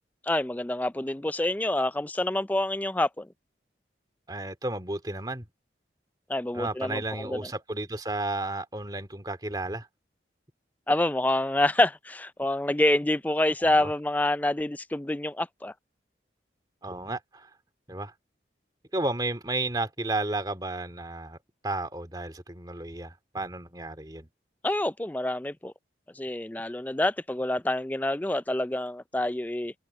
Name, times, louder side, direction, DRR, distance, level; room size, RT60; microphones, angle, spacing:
voice 1, 0.2-3.3 6.3-7.4 10.9-15.7 24.6-25.7 26.2-29.7, left 1 dB, 10° left, 0.4 m, -27 dB
voice 2, 4.3-5.5 6.5-9.9 13.6-13.9 16.8-17.5 17.9-18.1 18.9-21.4 21.6-24.3, right 2 dB, 20° right, 2.4 m, -33 dB
head